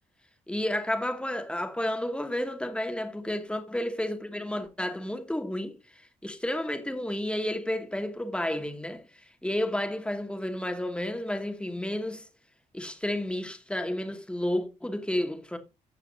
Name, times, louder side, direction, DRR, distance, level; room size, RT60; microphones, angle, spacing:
voice 1, 0.5-5.7 6.2-9.0 9.4-12.3 12.7-15.6, left 1 dB, 5° left, 2.4 m, -31 dB
16.0 x 5.6 x 2.8 m
supercardioid pair, 55°, 15 cm